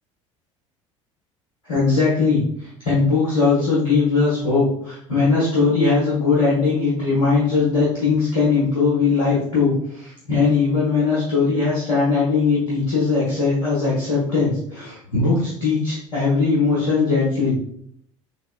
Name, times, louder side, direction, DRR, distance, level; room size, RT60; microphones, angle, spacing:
voice 1, 1.7-17.6, left 4 dB, 80° left, -8 dB, 1.0 m, -20 dB
3.9 x 3.2 x 2.3 m, 0.68 s
figure-of-eight pair, 65°, 17 cm